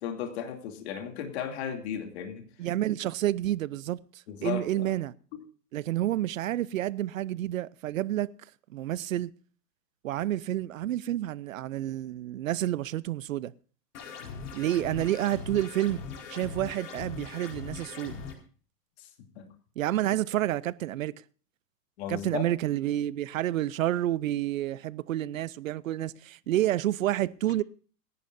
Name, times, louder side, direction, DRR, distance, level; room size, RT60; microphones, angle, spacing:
voice 1, 0.0-2.4 4.3-5.0 5.3-5.4 19.0-19.1 19.4-19.5 22.0-22.4, left 9 dB, 40° left, 2.8 m, -35 dB
voice 2, 2.6-4.0 4.4-5.1 5.7-8.3 8.7-9.3 10.0-13.5 14.5-16.0 16.3-18.2 19.8-21.1 22.1-27.6, right 13 dB, 55° right, 0.7 m, -29 dB
sound 1, 13.9-18.3, left 5 dB, 65° left, 4.8 m, -41 dB
27.5 x 11.0 x 2.6 m
supercardioid pair, 170°, 49 cm